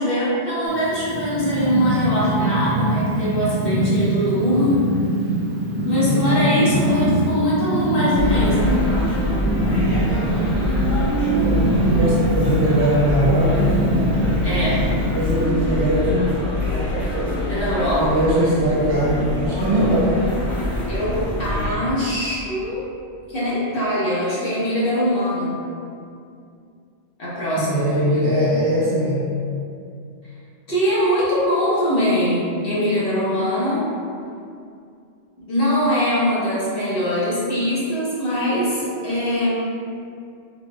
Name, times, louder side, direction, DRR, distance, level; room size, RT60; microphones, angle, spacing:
voice 1, 0.0-4.8 5.8-8.9 14.4-14.8 17.5-18.1 20.9-22.8 23.3-25.5 27.2-28.3 30.7-33.8 35.5-39.5, equal, 55° left, -9 dB, 1.1 m, -22 dB
Purr, 0.7-15.4, right 1 dB, 90° right, 0.9 m, -23 dB
voice 2, 6.0-6.5 11.8-13.7 15.1-16.3 18.0-20.1 27.5-29.2, equal, 60° right, -7 dB, 1.0 m, -20 dB
sound 1, 8.1-21.7, left 1 dB, 30° left, 0.9 m, -24 dB
3.9 x 2.8 x 2.2 m, 2.4 s
omnidirectional pair, 1.2 m